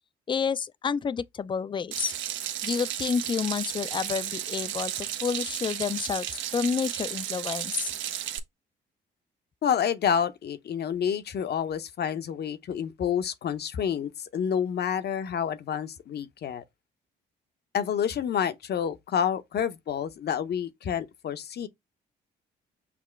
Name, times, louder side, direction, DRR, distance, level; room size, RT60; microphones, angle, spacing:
voice 1, 0.3-2.1 2.6-7.9, left 6 dB, 25° left, 0.3 m, -29 dB
Water tap faucet / Sink (filling or washing), 1.9-8.4, right 11 dB, 75° right, 0.6 m, -33 dB
voice 2, 9.6-16.6 17.7-21.7, left 8 dB, 55° left, 0.7 m, -29 dB
5.9 x 2.1 x 3.2 m
supercardioid pair, 70°, 20 cm